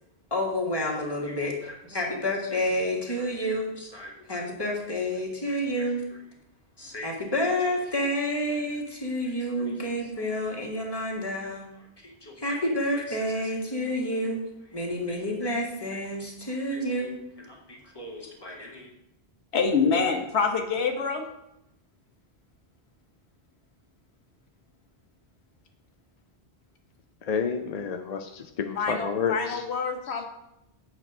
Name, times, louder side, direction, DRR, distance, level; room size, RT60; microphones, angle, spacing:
voice 1, 0.3-6.2 6.8-11.7 12.0-14.4 14.7-18.9, left 1 dB, 25° left, -2 dB, 1.7 m, -30 dB
voice 2, 19.5-21.3 28.8-30.3, left 5 dB, 85° left, 5 dB, 1.2 m, -26 dB
voice 3, 27.2-29.6, left 6 dB, 50° left, 6 dB, 0.5 m, -30 dB
8.1 x 4.3 x 6.0 m, 0.84 s
omnidirectional pair, 1.1 m